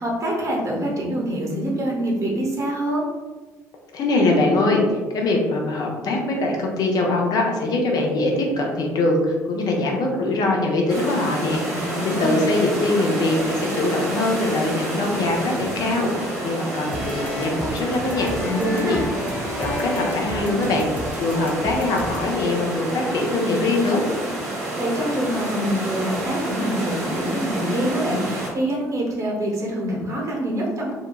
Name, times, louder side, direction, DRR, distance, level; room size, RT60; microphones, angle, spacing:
voice 1, 0.0-3.1 11.7-12.5 18.4-19.0 24.5-30.9, right 1 dB, 35° right, -2 dB, 0.8 m, -25 dB
voice 2, 3.9-4.8 5.1-19.0 19.6-20.9 21.2-24.0, left 2 dB, 50° left, 0 dB, 0.6 m, -22 dB
sound 1, 10.9-28.5, right 1 dB, 80° right, 1.0 m, -29 dB
sound 2, 16.6-21.2, left 1 dB, ahead, 0.9 m, -34 dB
sound 3, 16.9-22.3, right 1 dB, 20° right, 0.4 m, -34 dB
2.8 x 2.2 x 2.2 m, 1.3 s
figure-of-eight pair, 50°, 8 cm